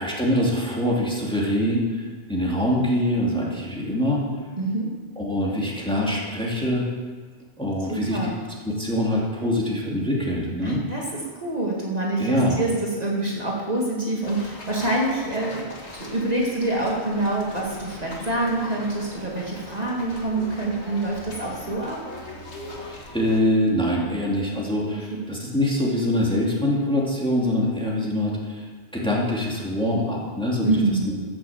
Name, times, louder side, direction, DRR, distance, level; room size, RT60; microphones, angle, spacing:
voice 1, 0.0-4.2 5.2-6.9 7.6-8.3 8.6-10.8 12.2-12.6 22.8-28.7 28.9-30.8 31.1-31.2, left 1 dB, 5° left, -4 dB, 2.6 m, -24 dB
voice 2, 4.6-4.9 7.9-8.4 10.6-22.0 30.6-31.3, right 2 dB, 35° right, -4 dB, 2.3 m, -26 dB
sound 1, 14.2-23.4, left 1 dB, 80° left, 2.1 m, -40 dB
15.5 x 7.0 x 7.3 m, 1.5 s
omnidirectional pair, 1.1 m